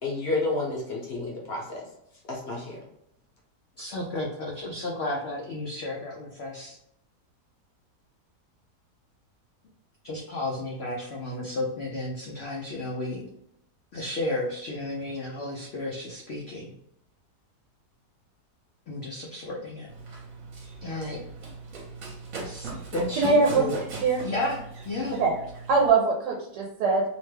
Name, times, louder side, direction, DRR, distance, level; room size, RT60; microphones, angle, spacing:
voice 1, 0.0-1.8 2.3-2.8, left 2 dB, 50° left, -3 dB, 0.8 m, -30 dB
voice 2, 3.8-6.8 10.0-13.3 13.9-16.7 18.9-19.9 20.8-21.2 22.4-23.7 24.2-25.2, left 2 dB, 90° left, -2 dB, 0.5 m, -33 dB
Run, 19.9-25.9, right 3 dB, 60° right, 1.2 m, -40 dB
voice 3, 23.1-23.7 24.0-24.2 25.1-25.3 25.7-27.0, right 4 dB, 85° right, -2 dB, 1.2 m, -22 dB
2.9 x 2.1 x 3.2 m, 0.76 s
omnidirectional pair, 1.7 m